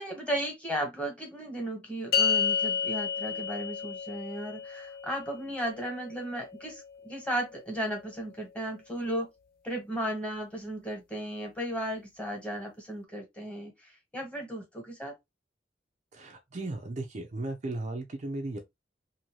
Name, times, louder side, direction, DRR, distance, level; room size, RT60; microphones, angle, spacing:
voice 1, 0.0-9.3 9.6-15.1, right 1 dB, 5° left, 1.3 m, -35 dB
sound 1, 2.1-8.7, left 6 dB, 55° left, 0.4 m, -33 dB
voice 2, 16.1-18.6, right 2 dB, 40° right, 0.5 m, -36 dB
2.7 x 2.7 x 3.0 m
head